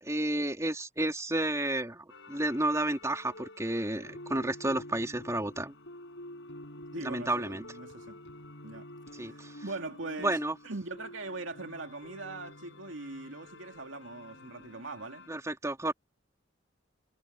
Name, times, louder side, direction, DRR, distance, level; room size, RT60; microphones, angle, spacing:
voice 1, 0.0-5.7 7.0-7.6 9.2-9.5 10.2-10.6 15.3-15.9, right 1 dB, 15° right, 3.7 m, -31 dB
sound 1, 2.1-15.3, left 1 dB, 65° left, 7.5 m, -48 dB
voice 2, 6.9-8.2 8.6-8.9 9.2-10.4 10.6-15.3, right 2 dB, 80° right, 2.7 m, -41 dB
head